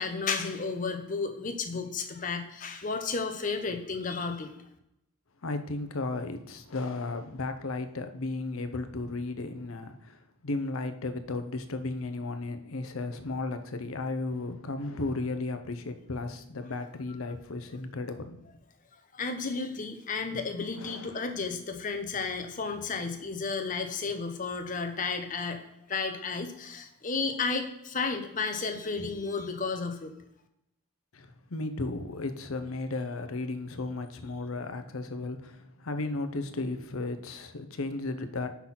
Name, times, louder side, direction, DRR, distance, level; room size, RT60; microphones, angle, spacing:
voice 1, 0.0-4.5 19.1-25.6 25.9-30.1, left 4 dB, 35° left, 0.8 m, -32 dB
voice 2, 5.4-10.2 10.4-18.4 20.8-21.2 31.1-38.5, left 2 dB, 75° left, 0.7 m, -34 dB
5.8 x 4.0 x 5.8 m
head